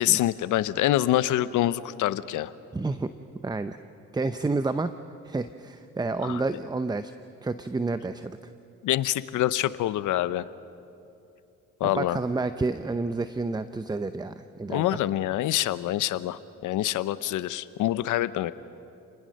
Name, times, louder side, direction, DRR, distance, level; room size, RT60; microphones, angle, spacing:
voice 1, 0.0-2.5 6.2-6.4 8.8-10.4 11.8-12.2 14.7-18.5, left 13 dB, 85° left, 15 dB, 0.8 m, -26 dB
voice 2, 2.7-3.1 3.4-3.8 4.1-4.9 5.2-7.1 7.4-8.4 11.8-15.0, right 3 dB, 15° right, 11 dB, 0.7 m, -29 dB
29.5 x 20.0 x 6.5 m, 2.7 s
cardioid pair, 90°, 30 cm